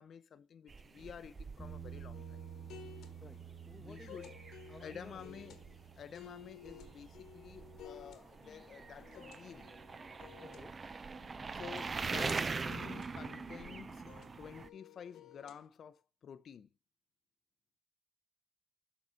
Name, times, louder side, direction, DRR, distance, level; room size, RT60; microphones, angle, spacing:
voice 1, 0.0-2.4 3.8-4.4 4.8-5.6 5.9-9.7 11.5-14.1 14.4-16.7, left 7 dB, 60° left, 0.6 m, -51 dB
sound 1, 0.7-14.7, right 4 dB, 35° right, 0.5 m, -43 dB
Bass guitar, 1.6-7.8, right 8 dB, 15° right, 1.7 m, -51 dB
sound 2, 2.1-15.7, left 8 dB, 80° left, 1.4 m, -56 dB
voice 2, 3.2-4.2 4.7-5.4 10.4-10.8, left 3 dB, 20° left, 0.9 m, -55 dB
7.5 x 4.1 x 6.2 m
cardioid pair, 90°, 0 cm